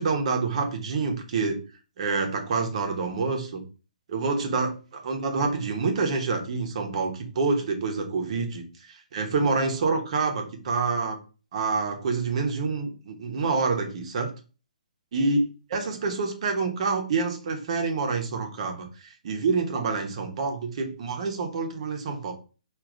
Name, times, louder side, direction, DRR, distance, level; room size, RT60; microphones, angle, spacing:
voice 1, 0.0-1.6 2.0-3.6 4.1-11.2 11.5-14.3 15.1-15.4 15.7-18.9 19.2-22.3, right 4 dB, 50° right, 3 dB, 1.1 m, -27 dB
4.9 x 2.8 x 3.8 m, 0.35 s
hypercardioid pair, 140°, 4 cm